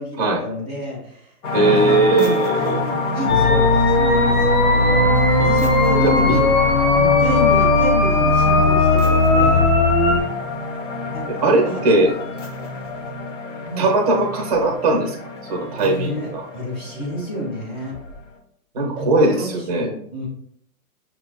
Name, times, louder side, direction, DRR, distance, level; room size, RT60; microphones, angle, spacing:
voice 1, 0.0-5.1 5.4-6.5 6.9-9.6 11.1-11.8 13.7-13.9 15.8-17.9 19.0-20.3, equal, 15° left, -4 dB, 0.5 m, -29 dB
sound 1, 1.4-18.3, left 3 dB, 55° left, 0.9 m, -28 dB
voice 2, 1.5-2.8 6.0-6.4 11.3-12.2 13.8-15.2 15.5-16.4 18.7-19.9, right 2 dB, 30° right, 1 dB, 0.6 m, -19 dB
sound 2, 3.3-10.2, left 2 dB, 85° left, 1.1 m, -16 dB
5.6 x 2.2 x 2.2 m, 0.64 s
hypercardioid pair, 150°, 43 cm